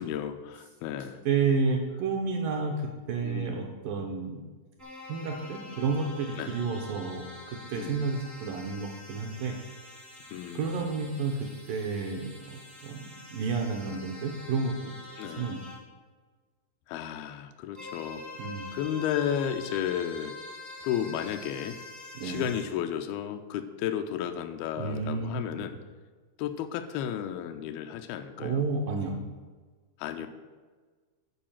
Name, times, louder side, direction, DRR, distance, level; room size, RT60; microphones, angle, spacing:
voice 1, 0.0-1.2 3.2-3.8 6.4-6.5 7.7-8.0 10.3-11.0 15.2-15.5 16.9-18.2 18.7-20.4 20.8-21.8 22.2-25.8 26.4-28.6 30.0-30.3, left 9 dB, 85° left, 7 dB, 2.2 m, -33 dB
voice 2, 1.3-4.4 5.1-9.6 10.5-14.9 15.2-15.6 18.4-18.7 22.2-22.5 24.8-25.4 28.4-29.2, right 4 dB, 75° right, 2 dB, 2.1 m, -31 dB
sound 1, 4.8-15.8 17.7-22.6, left 2 dB, 15° right, 0.5 m, -46 dB
10.0 x 4.8 x 7.2 m, 1.4 s
omnidirectional pair, 4.8 m